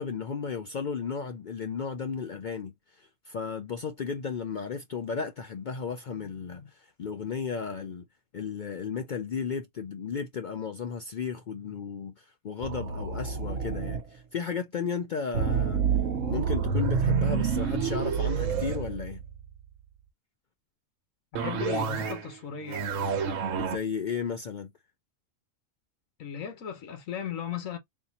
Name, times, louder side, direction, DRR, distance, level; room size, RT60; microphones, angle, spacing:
voice 1, 0.0-8.0 8.3-15.8 16.3-19.2 23.6-24.7, left 6 dB, 65° left, 0.4 m, -34 dB
sound 1, 12.6-14.0 15.3-19.6 21.3-22.3 22.6-23.8, right 6 dB, 70° right, 1.1 m, -28 dB
voice 2, 21.3-22.8 26.2-27.8, left 8 dB, 80° left, 1.5 m, -36 dB
3.7 x 2.7 x 2.8 m
omnidirectional pair, 1.4 m